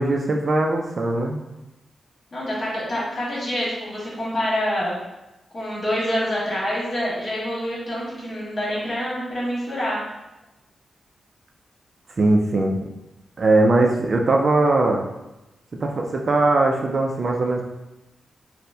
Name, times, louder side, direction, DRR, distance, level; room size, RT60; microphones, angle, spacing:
voice 1, 0.0-1.4 12.2-12.8 13.4-15.0 15.8-17.6, right 2 dB, 40° right, 1 dB, 0.3 m, -20 dB
voice 2, 2.3-5.0 5.5-10.0, equal, 40° left, -7 dB, 1.4 m, -26 dB
4.2 x 2.1 x 2.7 m, 0.97 s
wide cardioid pair, 135°, 0 cm